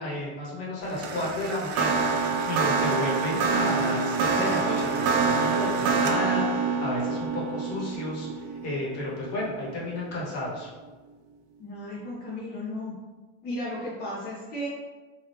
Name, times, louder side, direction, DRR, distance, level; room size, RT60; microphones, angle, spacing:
voice 1, 0.0-2.0 2.4-10.7, left 1 dB, 45° left, -5 dB, 1.1 m, -32 dB
sound 1, 0.9-10.2, right 4 dB, 55° right, 0.4 m, -26 dB
voice 2, 11.6-12.9 13.4-14.7, left 1 dB, 30° left, -7 dB, 0.6 m, -34 dB
2.9 x 2.3 x 3.3 m, 1.3 s
cardioid pair, 150°, 35 cm